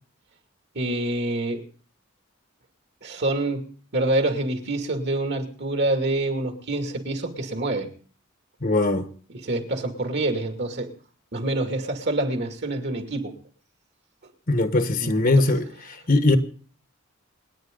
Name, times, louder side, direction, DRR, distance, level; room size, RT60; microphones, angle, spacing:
voice 1, 0.7-1.6 3.0-7.9 9.3-10.9 11.3-13.3 15.0-15.5, right 2 dB, 55° right, 2.6 m, -26 dB
voice 2, 8.6-9.1 14.5-15.7 16.1-16.4, left 2 dB, 45° left, 1.3 m, -20 dB
28.5 x 9.6 x 3.9 m
head